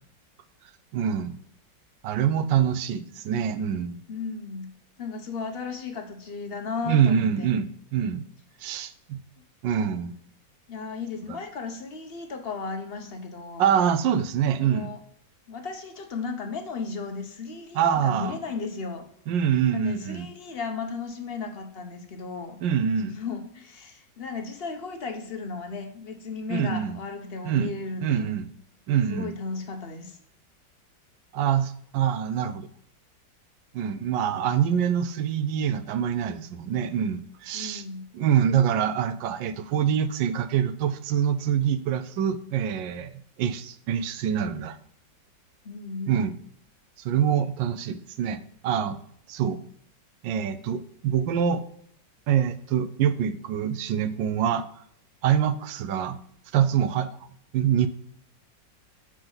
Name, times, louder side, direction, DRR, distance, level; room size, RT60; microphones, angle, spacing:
voice 1, 0.9-1.4 2.0-4.0 6.9-8.2 8.6-9.2 9.6-10.1 11.3-11.4 13.6-14.9 17.7-18.4 19.3-20.3 22.6-23.1 26.5-27.0 27.4-27.7 28.0-28.5 28.9-29.3 31.3-32.7 33.7-37.8 38.1-43.1 43.4-44.8 46.1-46.3 47.0-49.0 49.3-49.6 50.2-51.6 52.3-54.6 55.2-56.2 56.5-57.1 57.5-57.9, right 8 dB, 80° right, 11 dB, 1.3 m, -25 dB
voice 2, 4.1-4.7 5.0-7.5 10.7-13.7 14.6-15.0 15.5-19.1 19.7-22.6 23.0-28.3 29.1-30.2 37.5-38.1 45.6-46.3, left 4 dB, 45° left, 5 dB, 0.8 m, -35 dB
7.2 x 5.0 x 3.8 m, 0.69 s
omnidirectional pair, 2.0 m